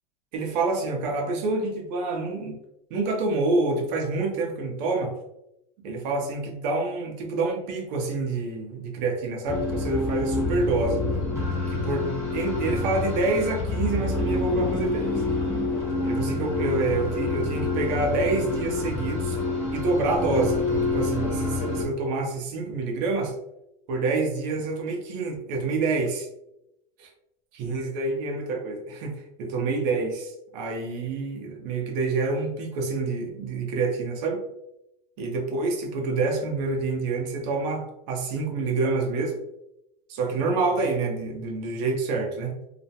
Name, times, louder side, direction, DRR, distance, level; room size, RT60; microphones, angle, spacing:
voice 1, 0.3-2.6 2.9-5.1 5.8-11.0 11.7-15.2 16.0-19.4 19.7-23.3 23.9-26.3 27.0-27.1 27.5-34.4 35.2-39.4 40.1-42.7, right 3 dB, 45° right, 1 dB, 0.6 m, -27 dB
sound 1, 9.5-21.8, left 3 dB, 10° left, 0.7 m, -27 dB
2.3 x 2.0 x 2.7 m, 0.84 s
supercardioid pair, 165°, 30 cm